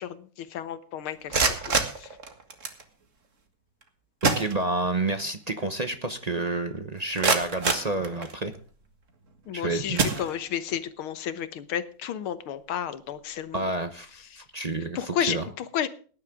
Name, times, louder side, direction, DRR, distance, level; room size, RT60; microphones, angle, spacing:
voice 1, 0.0-2.1 9.5-13.6 14.3-14.4 15.0-15.9, left 9 dB, 90° left, 13 dB, 1.9 m, -32 dB
sound 1, 1.1-2.8 3.8-3.9 4.2-5.1 5.5-5.6 6.1-6.2 6.8-8.6 9.3-9.5 9.9-10.8, right 4 dB, 40° right, 1.9 m, -28 dB
voice 2, 4.2-8.5 9.5-10.0 13.5-15.5, right 2 dB, 55° right, 9 dB, 0.4 m, -29 dB
19.0 x 10.5 x 3.6 m, 0.42 s
omnidirectional pair, 2.3 m